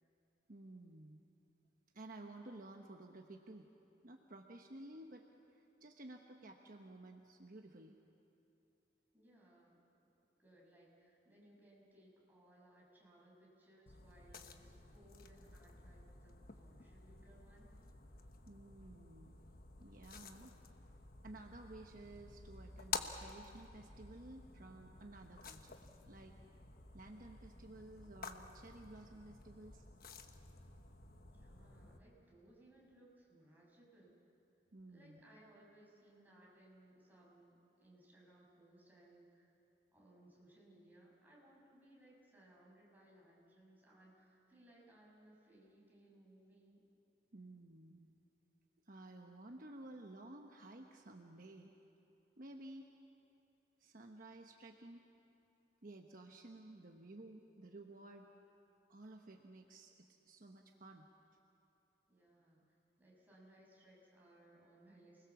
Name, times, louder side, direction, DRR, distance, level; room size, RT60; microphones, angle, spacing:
voice 1, 0.5-1.2 1.9-3.7 4.0-8.0 18.5-19.4 19.8-20.5 21.2-25.8 26.1-26.4 26.9-29.8 34.7-35.2 47.3-48.1 48.9-51.7 52.4-52.9 53.8-55.1 55.8-58.3 58.9-61.1, right 2 dB, 50° right, 3 dB, 1.1 m, -54 dB
voice 2, 9.1-9.8 10.4-17.8 31.3-34.2 34.9-39.5 39.9-46.8 62.1-65.3, right 1 dB, 10° right, -5 dB, 6.3 m, -64 dB
sound 1, 13.9-32.0, left 5 dB, 55° left, 1.2 m, -51 dB
29.0 x 20.5 x 7.1 m, 2.9 s
head